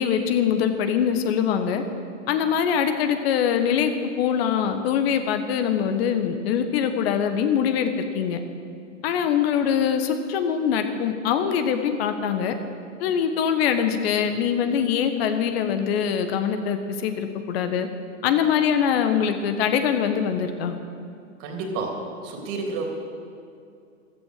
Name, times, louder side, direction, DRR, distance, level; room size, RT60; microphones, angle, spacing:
voice 1, 0.0-1.8 2.3-8.4 9.0-12.5 13.0-17.9 18.2-20.7, left 8 dB, 50° left, 8 dB, 1.4 m, -23 dB
voice 2, 21.4-22.9, right 3 dB, 45° right, 2 dB, 3.3 m, -30 dB
15.0 x 12.5 x 6.7 m, 2.5 s
hypercardioid pair, 115°, 38 cm